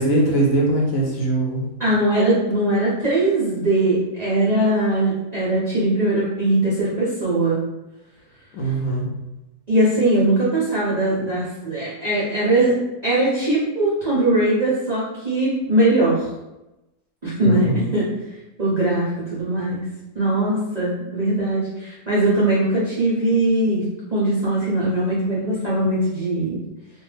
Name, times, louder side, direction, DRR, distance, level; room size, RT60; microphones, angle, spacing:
voice 1, 0.0-1.6 8.5-9.1 17.4-17.8, right 2 dB, 70° left, -1 dB, 0.9 m, -21 dB
voice 2, 1.8-7.6 8.6-8.7 9.7-12.8 13.0-16.3 17.2-18.1 18.6-19.8 20.1-23.8 24.1-26.6, right 1 dB, 60° right, -8 dB, 0.4 m, -20 dB
2.6 x 2.1 x 3.2 m, 0.98 s
omnidirectional pair, 1.7 m